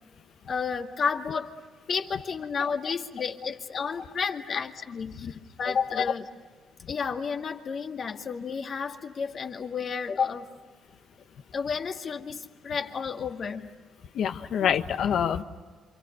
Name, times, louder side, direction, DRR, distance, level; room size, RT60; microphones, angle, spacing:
voice 1, 0.5-1.5 1.9-5.3 5.6-6.2 6.9-10.5 11.5-13.7 14.6-14.7 15.2-15.3, left 6 dB, 50° left, 4 dB, 2.1 m, -31 dB
voice 2, 14.1-15.4, left 8 dB, 70° left, 8 dB, 1.3 m, -26 dB
28.0 x 27.0 x 6.7 m, 1.5 s
cardioid pair, 90°, 0 cm